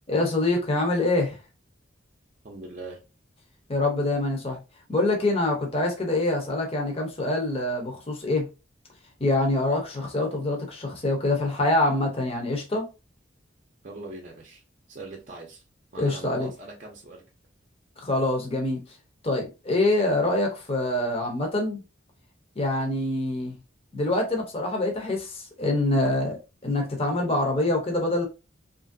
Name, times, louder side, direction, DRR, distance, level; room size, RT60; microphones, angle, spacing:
voice 1, 0.1-1.4 3.7-4.6 4.9-8.5 9.2-12.9 16.0-16.5 18.0-18.8 19.2-21.8 22.6-23.6 23.9-26.4 26.6-28.3, left 2 dB, 30° left, 0.7 m, -25 dB
voice 2, 2.4-3.0 13.8-14.6 14.9-15.6 15.9-17.2, right 2 dB, 40° right, 0.5 m, -41 dB
2.9 x 2.5 x 2.5 m
head